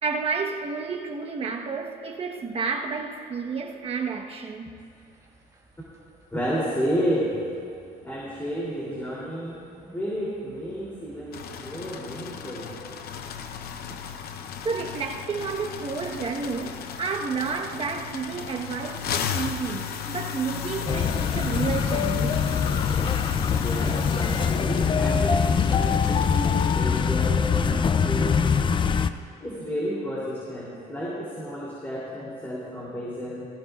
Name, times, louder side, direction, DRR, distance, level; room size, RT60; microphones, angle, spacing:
voice 1, 0.0-4.8 14.6-22.4, right 5 dB, 35° right, 1.2 m, -31 dB
sound 1, 4.8-12.2, right 1 dB, 20° right, 1.9 m, -51 dB
voice 2, 6.3-7.3 8.0-9.6 9.9-12.7 23.6-28.4 29.4-33.5, equal, 10° left, 3.1 m, -31 dB
sound 2, 11.3-27.0, left 7 dB, 65° left, 0.8 m, -35 dB
sound 3, 20.9-29.1, left 6 dB, 30° left, 0.4 m, -23 dB
18.0 x 15.0 x 2.4 m
cardioid pair, 110°, 17 cm